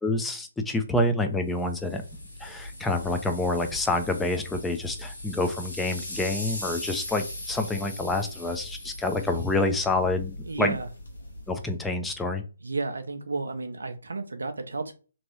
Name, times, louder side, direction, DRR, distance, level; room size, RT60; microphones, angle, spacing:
voice 1, 0.0-2.0 2.4-10.7 11.5-12.4, left 2 dB, 5° left, 5 dB, 0.4 m, -27 dB
sound 1, 1.5-11.7, left 1 dB, 85° left, 1.4 m, -39 dB
voice 2, 10.4-10.9 12.6-14.9, right 3 dB, 80° right, 7 dB, 0.5 m, -32 dB
3.0 x 2.6 x 2.9 m, 0.35 s
figure-of-eight pair, 140°, 0 cm